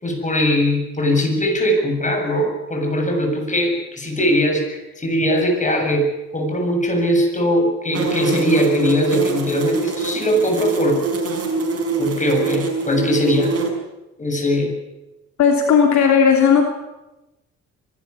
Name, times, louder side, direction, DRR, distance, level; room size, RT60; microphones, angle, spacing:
voice 1, 0.0-11.0 12.0-13.5 14.2-14.7, equal, 25° left, 2 dB, 7.8 m, -20 dB
sound 1, 7.9-13.7, right 4 dB, 50° right, 5.9 m, -24 dB
voice 2, 15.4-16.6, left 6 dB, 70° left, 3 dB, 3.0 m, -14 dB
25.0 x 13.0 x 9.9 m, 0.98 s
cardioid pair, 90°, 30 cm